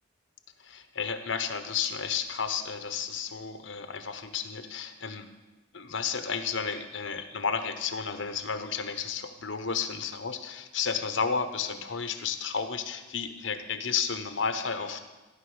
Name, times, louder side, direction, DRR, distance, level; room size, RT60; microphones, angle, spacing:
voice 1, 0.6-5.3 5.7-15.0, left 6 dB, 75° left, 8 dB, 1.2 m, -32 dB
15.0 x 5.7 x 9.7 m, 1.2 s
head